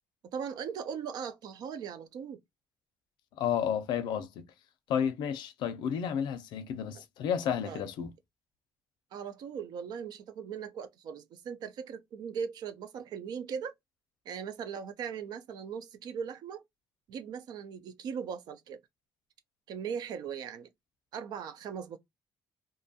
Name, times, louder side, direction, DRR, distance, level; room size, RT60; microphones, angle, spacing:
voice 1, 0.3-2.4 7.6-7.9 9.1-13.7 14.3-16.6 17.1-18.8 19.7-20.7 21.1-22.0, right 7 dB, 65° right, 0.5 m, -39 dB
voice 2, 3.4-4.5 4.9-8.1, left 8 dB, 85° left, 0.5 m, -31 dB
2.6 x 2.2 x 2.7 m
cardioid pair, 165°, 8 cm